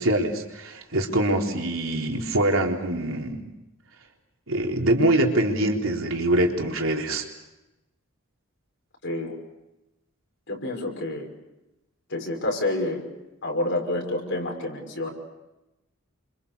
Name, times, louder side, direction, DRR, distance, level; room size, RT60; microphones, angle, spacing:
voice 1, 0.0-3.5 4.5-7.2, right 1 dB, 70° right, 1 dB, 4.0 m, -24 dB
voice 2, 9.0-9.3 10.5-11.3 12.1-13.0 13.4-15.1, left 1 dB, 60° left, 2 dB, 6.0 m, -28 dB
29.5 x 26.0 x 6.9 m, 0.95 s
head